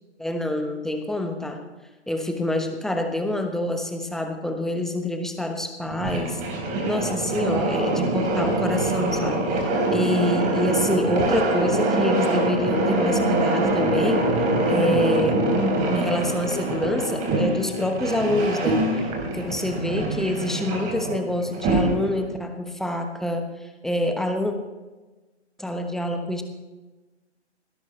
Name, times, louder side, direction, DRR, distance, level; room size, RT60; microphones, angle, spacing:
voice 1, 0.2-1.6 2.1-6.4 6.9-14.3 14.7-15.5 15.9-18.8 19.3-24.5 25.6-26.4, left 1 dB, ahead, 5 dB, 1.1 m, -26 dB
sound 1, 5.9-22.2, right 2 dB, 20° right, 3.7 m, -24 dB
19.5 x 17.5 x 3.2 m, 1.2 s
figure-of-eight pair, 130°, 34 cm